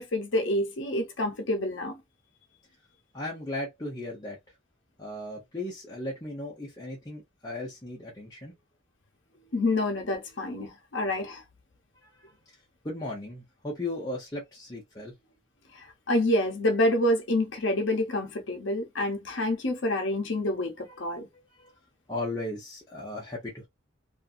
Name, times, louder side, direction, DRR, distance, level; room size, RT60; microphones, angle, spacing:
voice 1, 0.0-2.0 9.5-11.4 15.7-21.3, left 1 dB, 70° left, 0.7 m, -27 dB
voice 2, 3.1-4.4 5.0-8.5 9.3-9.6 10.3-10.4 12.0-12.6 12.8-15.1 20.8-21.1 21.3-21.7 22.1-23.7, left 2 dB, 20° left, 0.7 m, -37 dB
2.5 x 2.5 x 2.5 m
head